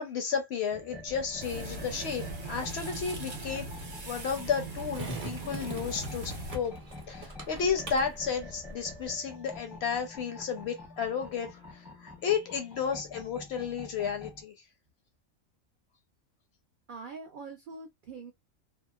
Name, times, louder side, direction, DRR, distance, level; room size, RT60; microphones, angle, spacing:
voice 1, 0.0-3.7 4.0-6.7 7.1-14.5, left 6 dB, 65° left, 0.7 m, -32 dB
sound 1, 0.7-14.4, left 2 dB, ahead, 0.4 m, -48 dB
Skateboard, 1.1-9.1, right 1 dB, 35° right, 0.7 m, -44 dB
sound 2, 1.4-6.5, right 2 dB, 55° right, 1.0 m, -40 dB
voice 2, 16.9-18.3, right 4 dB, 75° right, 0.4 m, -43 dB
2.8 x 2.0 x 2.2 m
omnidirectional pair, 1.4 m